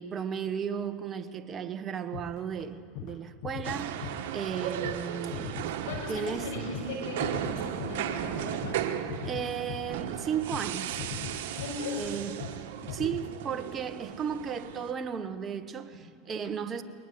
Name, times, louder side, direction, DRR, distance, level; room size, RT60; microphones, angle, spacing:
voice 1, 0.0-6.5 9.2-11.0 12.0-12.4 12.8-16.8, right 7 dB, 30° right, 1.1 m, -35 dB
sound 1, 2.1-2.7 2.9-3.2 3.4-4.6 4.8-12.6 12.9-13.3, left 8 dB, 65° left, 1.1 m, -41 dB
sound 2, 3.6-14.9, right 10 dB, 75° right, 1.3 m, -36 dB
voice 2, 5.9-8.8 11.6-12.0, left 3 dB, 85° left, 6.3 m, -37 dB
21.0 x 19.5 x 7.8 m
supercardioid pair, 115°, 0 cm